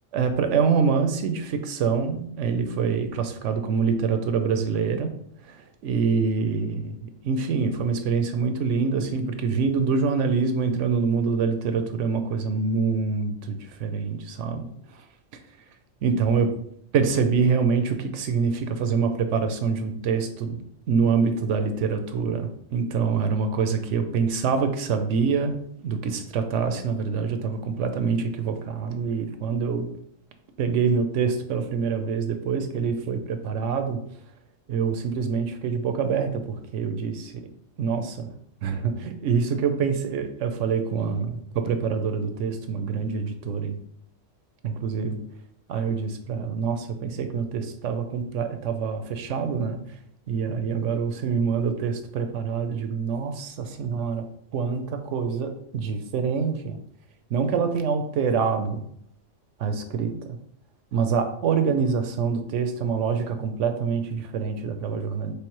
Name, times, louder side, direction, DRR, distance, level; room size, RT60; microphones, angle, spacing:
voice 1, 0.1-5.1 5.5-14.7 16.0-16.5 16.9-25.6 25.8-29.9 30.6-34.0 34.7-37.3 37.8-38.3 38.6-43.8 44.6-45.2 45.7-49.8 50.3-54.3 54.5-56.8 57.3-58.8 59.6-60.4 60.9-65.3, right 5 dB, 75° right, 7 dB, 0.9 m, -25 dB
3.3 x 3.2 x 4.5 m, 0.68 s
omnidirectional pair, 1.3 m